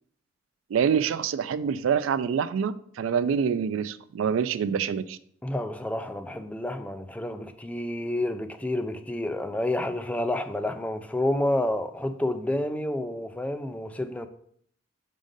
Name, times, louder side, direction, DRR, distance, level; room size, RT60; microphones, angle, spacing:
voice 1, 0.7-5.2, right 7 dB, 80° right, 0.3 m, -26 dB
voice 2, 5.4-14.3, left 1 dB, 5° left, 0.3 m, -29 dB
5.0 x 3.8 x 5.2 m
head